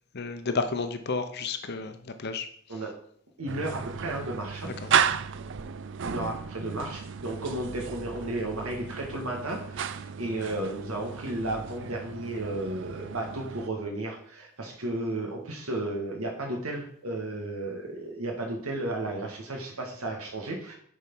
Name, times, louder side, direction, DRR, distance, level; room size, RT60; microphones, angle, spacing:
voice 1, 0.1-2.8 4.6-4.9, left 4 dB, 50° left, 8 dB, 0.7 m, -32 dB
voice 2, 3.4-4.7 6.0-20.7, right 1 dB, 80° right, 0 dB, 1.7 m, -33 dB
sound 1, 3.5-13.7, right 7 dB, 55° right, 0.5 m, -33 dB
10.5 x 4.7 x 5.4 m, 0.63 s
head